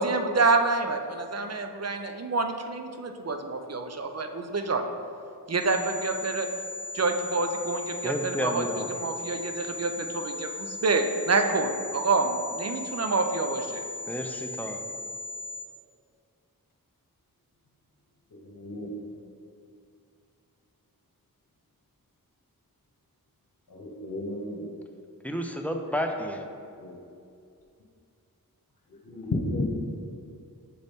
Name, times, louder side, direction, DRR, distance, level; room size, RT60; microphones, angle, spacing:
voice 1, 0.0-4.8 5.5-6.5 6.9-8.6 8.9-13.9, right 3 dB, 45° right, 6 dB, 0.6 m, -27 dB
sound 1, 5.6-15.6, left 2 dB, 30° left, 1.5 m, -38 dB
voice 2, 8.0-8.9 14.1-14.8 25.2-26.5, equal, 5° left, 3 dB, 0.6 m, -31 dB
voice 3, 18.4-18.9 23.7-24.6 26.8-27.0 29.0-29.7, left 2 dB, 65° left, 0 dB, 1.1 m, -32 dB
7.6 x 4.0 x 3.6 m, 2.4 s
cardioid pair, 40°, 36 cm